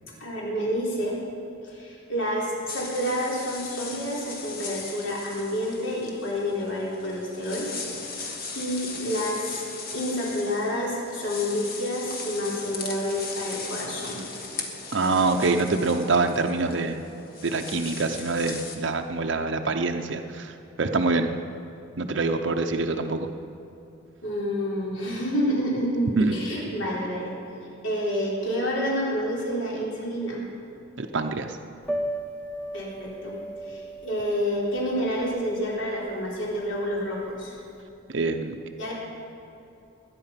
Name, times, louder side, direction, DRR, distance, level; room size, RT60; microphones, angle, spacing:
voice 1, 0.2-1.2 1.6-7.7 8.5-9.7 9.9-14.2 24.2-27.3 27.8-30.4 32.7-33.4 33.6-37.6 38.8-38.9, equal, 70° left, -4 dB, 3.8 m, -29 dB
sound 1, 2.7-18.8, left 4 dB, 45° left, 1.6 m, -38 dB
voice 2, 14.9-17.0 17.4-21.4 22.0-23.3 26.2-26.4 31.0-31.6 38.1-38.6, right 3 dB, 65° right, 5 dB, 0.7 m, -25 dB
Piano, 31.8-37.8, right 1 dB, 5° left, 1.0 m, -36 dB
21.5 x 9.9 x 5.8 m, 2.8 s
head